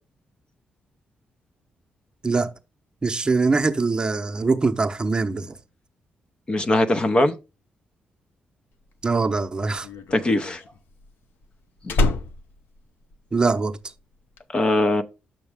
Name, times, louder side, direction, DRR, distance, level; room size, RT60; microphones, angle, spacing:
voice 1, 3.0-5.6 9.0-9.9 13.3-13.8, right 4 dB, 25° right, 0.8 m, -22 dB
voice 2, 6.5-7.3 10.1-10.6 14.5-15.0, left 1 dB, 30° left, 0.7 m, -20 dB
Slam, 8.9-13.7 14.0-14.4, left 2 dB, 85° left, 0.7 m, -28 dB
7.3 x 6.1 x 3.5 m
cardioid pair, 115°, 3 cm